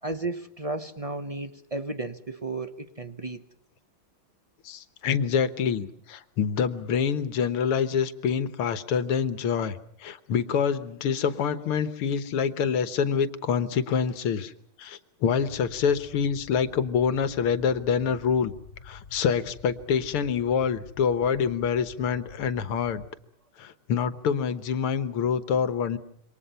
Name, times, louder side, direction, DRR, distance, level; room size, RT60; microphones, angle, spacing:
voice 1, 0.0-3.4, right 2 dB, 40° right, 0.5 m, -33 dB
voice 2, 4.6-14.5 14.8-18.5 18.8-23.0 23.6-26.0, left 7 dB, 80° left, 2.1 m, -26 dB
sound 1, 15.3-23.1, left 6 dB, 40° left, 3.4 m, -48 dB
27.5 x 24.5 x 5.6 m
omnidirectional pair, 2.4 m